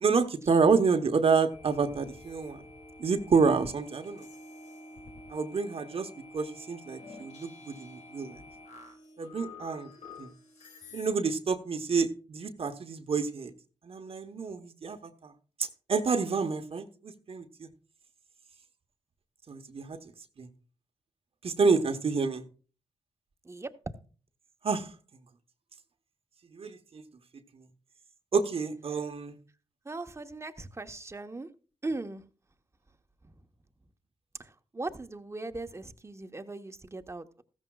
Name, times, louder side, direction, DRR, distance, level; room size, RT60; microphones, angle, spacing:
voice 1, 0.0-2.6 3.0-4.3 5.3-8.4 9.2-9.9 10.2-10.3 10.9-13.5 13.8-15.3 15.6-17.7 19.5-20.0 20.4-20.5 21.4-22.4 24.6-24.9 26.5-27.0 28.3-29.4, right 5 dB, 55° right, 1.1 m, -28 dB
sound 1, 1.5-11.1, left 2 dB, 75° left, 2.4 m, -49 dB
voice 2, 29.8-31.5 31.8-32.2 33.2-33.3 34.4-37.4, right 2 dB, 25° right, 1.1 m, -39 dB
15.0 x 13.5 x 2.4 m
cardioid pair, 60°, 12 cm